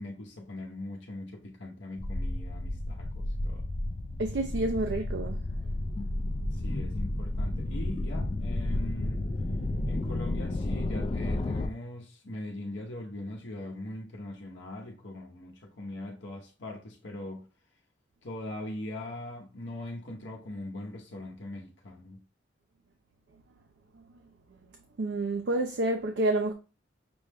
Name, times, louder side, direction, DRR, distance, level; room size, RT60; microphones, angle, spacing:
voice 1, 0.0-3.7 6.5-9.2 9.9-17.5 18.2-22.2, left 1 dB, 70° left, 0.8 m, -41 dB
sound 1, 2.0-11.7, left 1 dB, 30° left, 0.3 m, -32 dB
voice 2, 4.2-5.4 25.0-26.5, right 2 dB, 60° right, 0.4 m, -28 dB
6.0 x 2.1 x 3.3 m
head